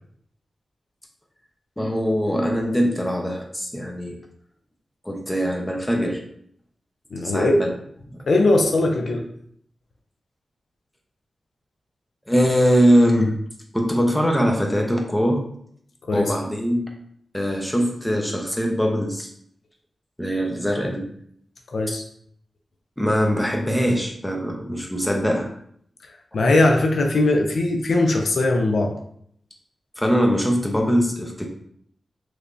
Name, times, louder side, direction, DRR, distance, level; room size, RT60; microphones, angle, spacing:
voice 1, 1.8-4.2 5.0-6.2 7.2-7.7 12.3-13.3 13.7-15.4 16.1-16.8 17.3-19.3 20.2-21.1 23.0-25.5 30.0-31.5, equal, 10° left, 1 dB, 0.8 m, -22 dB
voice 2, 7.1-7.6 8.3-9.2 16.0-16.3 21.7-22.0 26.3-29.0, left 2 dB, 75° left, 2 dB, 0.4 m, -20 dB
3.3 x 3.2 x 2.6 m, 0.66 s
cardioid pair, 45°, 0 cm